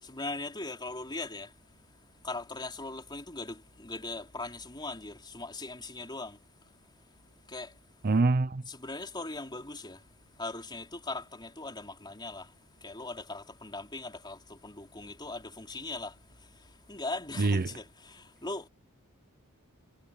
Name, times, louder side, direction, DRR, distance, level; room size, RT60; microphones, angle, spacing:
voice 1, 0.0-1.5 2.2-6.4 7.5-7.7 8.7-10.0 10.4-12.5 12.8-16.2 16.9-18.7, left 2 dB, 20° left, 4.0 m, -39 dB
voice 2, 8.0-8.6 17.4-17.6, right 3 dB, 40° right, 0.6 m, -24 dB
head